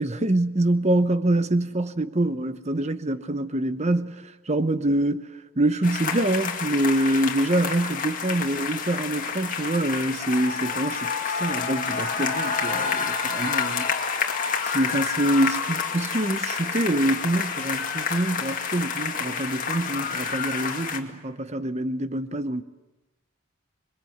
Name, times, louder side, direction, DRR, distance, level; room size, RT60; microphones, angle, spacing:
voice 1, 0.0-13.9 14.6-22.6, right 1 dB, 30° right, 1.0 m, -25 dB
sound 1, 5.8-21.0, left 6 dB, 40° left, 2.2 m, -29 dB
27.0 x 22.5 x 8.1 m
head